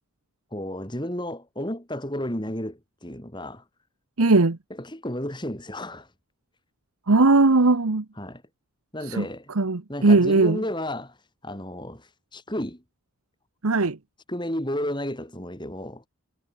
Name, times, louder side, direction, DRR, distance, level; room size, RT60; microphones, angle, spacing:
voice 1, 0.5-3.6 4.7-6.1 8.2-8.4 8.9-9.5 9.9-11.2 11.4-12.8 14.3-16.0, left 1 dB, 20° left, 4.4 m, -32 dB
voice 2, 4.2-4.6 7.1-8.0 9.1-9.2 9.6-10.6 13.6-14.0, right 3 dB, 90° right, 1.1 m, -19 dB
head